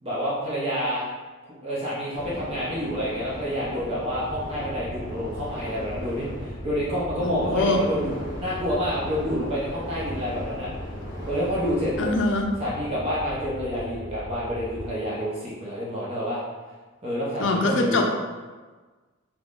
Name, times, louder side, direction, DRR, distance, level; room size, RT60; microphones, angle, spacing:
voice 1, 0.0-1.1 1.6-10.7 11.2-12.1 12.6-16.4 17.0-18.0, equal, 25° right, -7 dB, 0.6 m, -28 dB
sound 1, 2.1-12.0, left 1 dB, 40° left, 1.3 m, -38 dB
sound 2, 4.3-14.9, equal, 70° right, 0.9 m, -40 dB
voice 2, 7.2-7.8 12.0-12.5 17.4-18.1, left 2 dB, 55° left, 1 dB, 0.5 m, -23 dB
3.6 x 2.9 x 2.4 m, 1.3 s
head